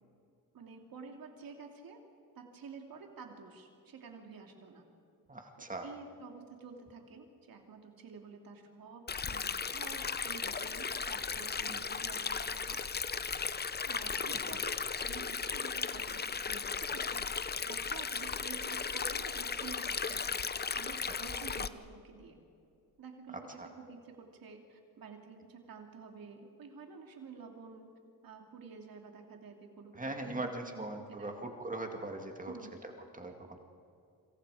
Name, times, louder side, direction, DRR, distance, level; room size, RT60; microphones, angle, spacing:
voice 1, 0.5-2.0 2.3-4.8 5.6-12.8 13.8-17.3 17.7-22.4 23.0-27.9 28.2-31.4 32.4-32.8, right 5 dB, 70° right, 2 dB, 2.8 m, -50 dB
voice 2, 5.3-5.9 11.7-11.8 14.3-14.4 23.6-23.7 29.9-32.5 32.8-33.6, right 2 dB, 20° right, 3 dB, 2.1 m, -40 dB
Stream, 9.1-21.7, left 5 dB, 30° left, 0.7 m, -36 dB
27.5 x 26.0 x 5.0 m, 2.5 s
cardioid pair, 105°, 36 cm